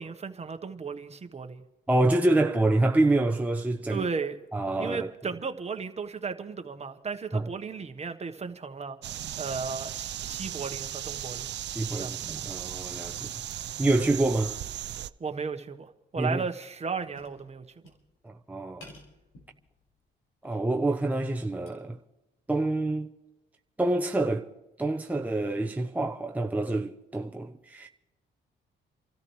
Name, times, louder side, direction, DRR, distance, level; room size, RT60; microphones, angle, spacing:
voice 1, 0.0-1.6 3.9-4.4 4.8-9.0 9.4-11.5 12.0-12.2 15.2-17.6, right 5 dB, 35° right, 1.2 m, -35 dB
voice 2, 1.9-4.1 4.5-5.1 7.3-7.4 11.7-13.3 13.8-14.6 16.2-16.4 18.2-18.9 20.4-22.0 22.5-23.1 23.8-24.5 24.8-27.9, right 2 dB, 10° right, 0.8 m, -27 dB
sound 1, 9.0-15.1, right 12 dB, 60° right, 0.5 m, -36 dB
sound 2, 16.0-16.1 16.4-18.3 18.8-20.1 20.4-21.7, left 1 dB, 85° left, 5.6 m, -54 dB
29.0 x 13.5 x 3.2 m
cardioid pair, 90°, 20 cm